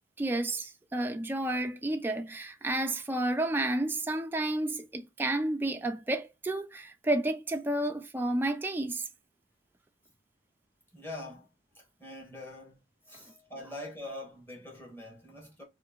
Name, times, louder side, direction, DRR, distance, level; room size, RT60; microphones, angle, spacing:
voice 1, 0.2-9.1, right 1 dB, 10° right, 0.3 m, -31 dB
voice 2, 10.9-15.6, left 1 dB, 10° left, 1.1 m, -44 dB
2.8 x 2.5 x 3.6 m
head